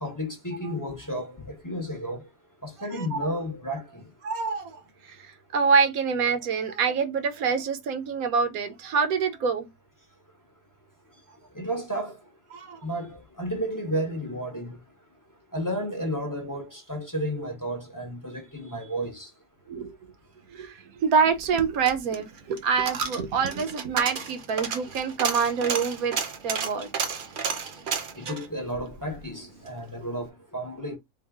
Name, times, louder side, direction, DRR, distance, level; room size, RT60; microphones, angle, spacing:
voice 1, 0.0-2.3 2.6-4.0 11.5-12.2 12.8-14.8 15.5-19.3 28.2-31.0, equal, 15° left, 0.7 m, -32 dB
voice 2, 2.9-3.3 4.2-4.8 5.0-5.2 5.5-9.7 12.5-12.8 19.7-19.9 20.5-26.2 26.4-27.1, right 5 dB, 75° right, 1.2 m, -26 dB
Coin (dropping), 21.3-29.8 30.1-30.2, right 6 dB, 55° right, 0.6 m, -32 dB
3.8 x 2.3 x 3.5 m
omnidirectional pair, 1.5 m